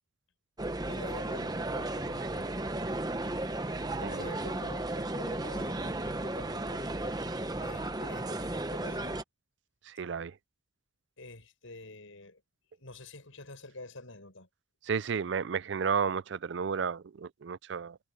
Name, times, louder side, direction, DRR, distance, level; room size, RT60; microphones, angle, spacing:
sound 1, 0.6-9.2, right 2 dB, 20° right, 0.8 m, -34 dB
voice 1, 0.8-2.5 4.0-7.2 7.6-9.2 11.2-12.4 12.8-14.5, left 2 dB, 80° left, 5.8 m, -47 dB
voice 2, 9.9-10.4 14.8-18.0, right 6 dB, 60° right, 0.4 m, -32 dB
head